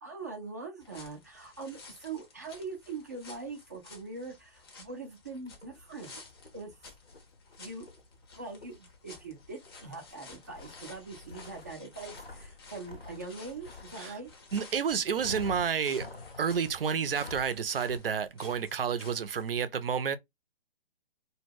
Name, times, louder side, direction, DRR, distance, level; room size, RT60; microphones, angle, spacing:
voice 1, 0.0-6.2 6.5-6.8 7.6-7.9 8.4-14.3, right 3 dB, 20° right, 0.4 m, -42 dB
sound 1, 0.8-19.5, left 4 dB, 25° left, 0.6 m, -53 dB
sound 2, 5.4-14.7 15.1-16.6 17.0-17.6 17.9-18.0, left 2 dB, 90° left, 0.9 m, -48 dB
voice 2, 14.5-16.1 16.4-20.2, right 7 dB, 70° right, 0.5 m, -30 dB
2.2 x 2.1 x 3.3 m
figure-of-eight pair, 140°, 29 cm